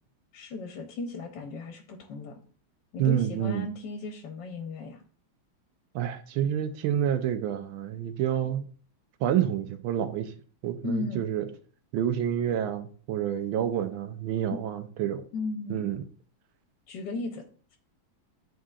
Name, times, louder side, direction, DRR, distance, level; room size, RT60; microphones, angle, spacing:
voice 1, 0.3-2.4 2.9-5.0 10.8-11.2 14.5-14.6 15.3-15.9 16.9-17.4, left 3 dB, 65° left, 1.3 m, -35 dB
voice 2, 3.0-3.7 5.9-8.6 9.2-10.3 10.6-11.5 11.9-15.2 15.7-16.0, right 10 dB, 80° right, 1.5 m, -28 dB
10.5 x 3.7 x 2.4 m
omnidirectional pair, 2.3 m